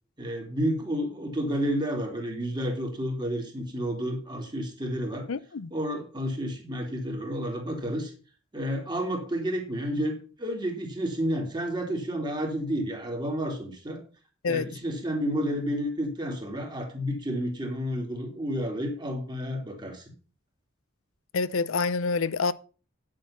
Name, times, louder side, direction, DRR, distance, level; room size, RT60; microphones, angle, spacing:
voice 1, 0.2-5.3 5.7-8.1 8.5-14.0 14.4-20.0, equal, 20° right, 2.8 m, -30 dB
voice 2, 5.3-5.7 14.4-14.7 21.3-22.5, left 4 dB, 90° left, 0.6 m, -27 dB
9.7 x 7.7 x 5.7 m
head